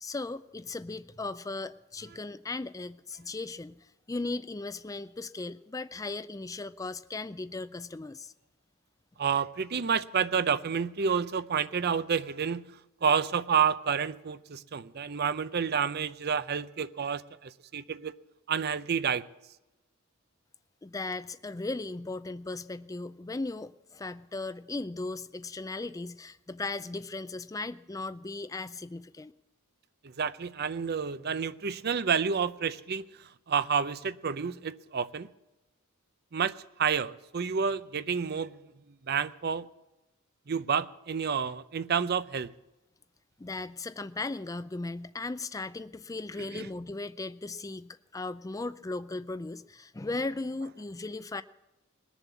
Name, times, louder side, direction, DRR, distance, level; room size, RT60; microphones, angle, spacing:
voice 1, 0.0-3.8 4.1-8.3 20.8-29.3 43.4-51.4, left 3 dB, 15° left, 0.4 m, -37 dB
voice 2, 9.2-12.6 13.0-18.1 18.5-19.3 30.0-35.3 36.3-38.6 39.0-39.7 40.5-42.5 46.5-46.7, right 6 dB, 50° right, 0.6 m, -29 dB
20.5 x 7.1 x 8.3 m
head